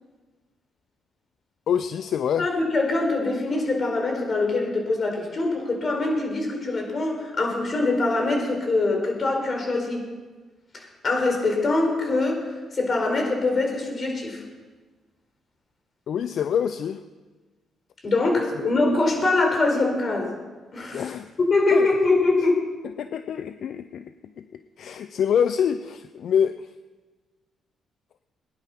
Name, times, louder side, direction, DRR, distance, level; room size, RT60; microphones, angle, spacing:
voice 1, 1.7-2.5 16.1-17.0 18.6-18.7 20.9-21.3 21.7-21.9 23.0-26.7, left 8 dB, 65° left, 11 dB, 0.5 m, -26 dB
voice 2, 2.4-10.0 10.7-12.4 12.7-14.4 18.0-20.3 20.7-21.1 21.5-22.6, left 2 dB, 40° left, 2 dB, 4.9 m, -23 dB
19.5 x 10.5 x 6.0 m, 1.3 s
cardioid pair, 90°, 0 cm